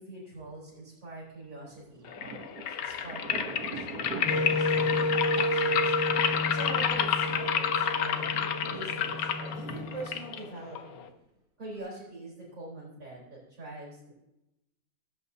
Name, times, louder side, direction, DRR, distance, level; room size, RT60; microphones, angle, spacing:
voice 1, 0.0-5.9 6.5-8.3 8.6-11.1 11.6-14.1, right 2 dB, 55° right, -6 dB, 4.3 m, -44 dB
Thunder, 1.7-11.2, right 4 dB, 85° right, 1.7 m, -45 dB
sound 1, 2.1-11.1, left 8 dB, 70° left, 1.2 m, -30 dB
Wind instrument woodwind instrument, 4.2-10.3, left 1 dB, 25° left, 1.2 m, -31 dB
16.0 x 8.4 x 2.7 m, 0.91 s
omnidirectional pair, 1.6 m